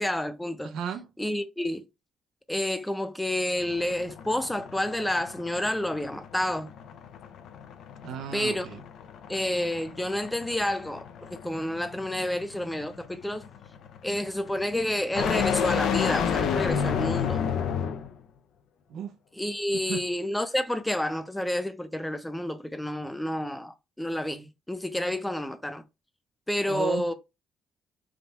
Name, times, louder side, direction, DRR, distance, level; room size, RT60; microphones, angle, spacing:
voice 1, 0.0-0.7 1.2-1.9 2.5-6.7 8.3-8.7 9.3-13.5 14.0-17.4 19.4-25.8 26.5-27.1, left 1 dB, 5° left, 0.5 m, -29 dB
voice 2, 0.6-1.1 8.0-8.8 18.9-19.2 19.9-20.0 26.7-27.1, right 7 dB, 80° right, 0.5 m, -34 dB
sound 1, 3.6-18.2, left 7 dB, 75° left, 0.5 m, -31 dB
3.6 x 2.3 x 4.0 m
cardioid pair, 120°, 0 cm